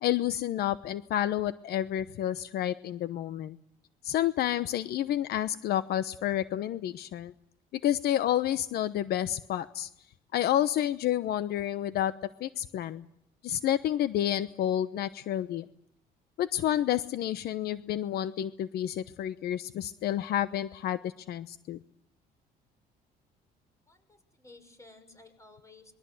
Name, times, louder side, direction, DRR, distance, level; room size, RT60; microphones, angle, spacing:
voice 1, 0.0-3.6 4.0-7.3 7.7-9.9 10.3-12.1 12.4-13.0 13.4-15.6 16.4-21.8, left 12 dB, 70° left, 14 dB, 1.0 m, -30 dB
voice 2, 23.9-25.9, left 2 dB, 20° left, 8 dB, 6.0 m, -55 dB
26.5 x 22.5 x 7.8 m, 0.73 s
cardioid pair, 110°, 17 cm